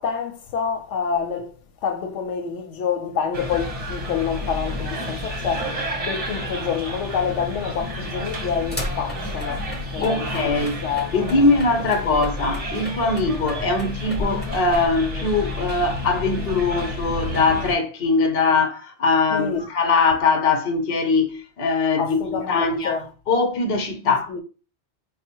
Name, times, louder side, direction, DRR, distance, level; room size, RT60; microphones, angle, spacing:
voice 1, 0.0-1.5 1.8-5.7 6.0-9.7 9.9-11.5 12.0-12.2 19.3-19.6 22.0-23.1 24.0-24.4, left 6 dB, 85° left, 0.9 m, -27 dB
sound 1, 3.3-17.8, left 1 dB, 35° right, 0.8 m, -30 dB
sound 2, 7.8-14.9, left 1 dB, 10° left, 0.8 m, -37 dB
voice 2, 10.0-10.7 11.1-23.0 23.3-24.3, left 3 dB, 60° left, 0.9 m, -21 dB
4.2 x 2.0 x 4.4 m
omnidirectional pair, 1.2 m